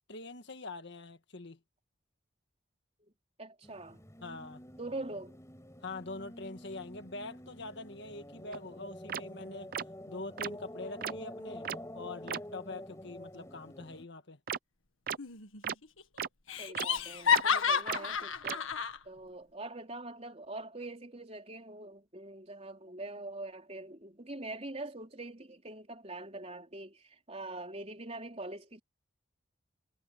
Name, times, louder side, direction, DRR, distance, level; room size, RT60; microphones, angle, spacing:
voice 1, 0.1-1.6 4.2-4.6 5.8-9.7 10.1-11.7 11.9-14.4, left 3 dB, 60° left, 1.6 m, -44 dB
voice 2, 3.4-4.0 4.8-5.4 16.6-18.7 19.0-28.8, right 2 dB, 30° right, 4.2 m, -43 dB
sound 1, 3.6-14.1, left 1 dB, 15° left, 6.1 m, -48 dB
sound 2, 8.5-8.6 9.1-9.2 9.7-9.8 10.4-10.5 11.0-11.1 11.6-11.8 12.3-12.4 14.5-14.6 15.1-15.2 15.6-15.7 16.2-16.3 16.7-16.9 17.3-17.4 17.9-18.0 18.4-18.5, right 8 dB, 45° right, 0.5 m, -34 dB
Laughter, 15.2-15.7 16.0-16.1 16.5-19.0, left 7 dB, 80° left, 1.8 m, -30 dB
head